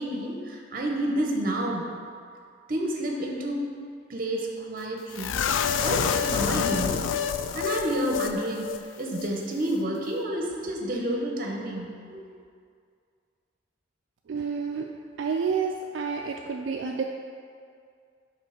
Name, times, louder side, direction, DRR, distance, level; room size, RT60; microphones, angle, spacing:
voice 1, 0.0-1.9 2.7-3.7 4.1-5.4 5.8-7.0 7.5-8.7 9.0-12.2, right 1 dB, 50° right, 0 dB, 0.9 m, -29 dB
sound 1, 5.2-8.4 8.6-8.8 9.1-9.3, left 7 dB, 85° left, 0.3 m, -27 dB
voice 2, 14.3-14.9 15.2-17.0, right 5 dB, 75° right, 2 dB, 0.3 m, -29 dB
5.2 x 4.0 x 5.8 m, 2.2 s
head